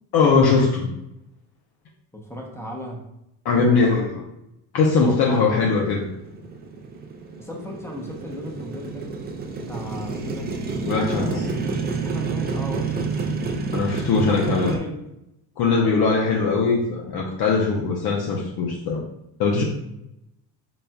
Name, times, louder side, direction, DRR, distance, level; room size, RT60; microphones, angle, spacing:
voice 1, 0.1-0.9 3.4-4.2 4.7-6.1 10.8-11.3 13.7-14.7 15.6-19.0 19.4-19.6, left 4 dB, 55° left, -1 dB, 0.7 m, -20 dB
voice 2, 2.1-3.0 3.6-4.1 5.0-5.5 7.4-9.1 9.6-10.5 11.0-11.5 12.0-13.2 14.2-14.9, equal, 5° left, 0 dB, 0.7 m, -35 dB
Motorcycle, 5.4-14.8, right 4 dB, 25° right, 0.4 m, -29 dB
4.1 x 3.4 x 2.2 m, 0.83 s
cardioid pair, 115°, 46 cm